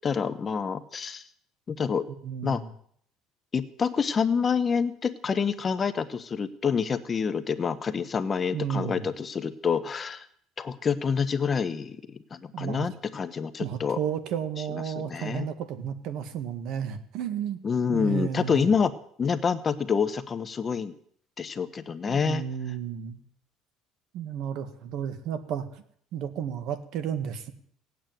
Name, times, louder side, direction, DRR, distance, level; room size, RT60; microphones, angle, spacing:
voice 1, 0.0-1.2 1.7-2.0 2.4-2.6 3.5-10.2 10.6-12.0 12.3-14.0 14.7-15.5 17.6-18.9 19.2-20.9 21.4-22.4, left 6 dB, 25° left, 11 dB, 0.9 m, -27 dB
voice 2, 2.2-2.7 8.5-9.1 12.5-12.9 13.6-17.6 17.9-18.7 22.1-23.2 24.1-25.8 26.1-27.5, right 8 dB, 60° right, 11 dB, 1.9 m, -32 dB
18.0 x 8.7 x 9.2 m, 0.64 s
cardioid pair, 155°, 0 cm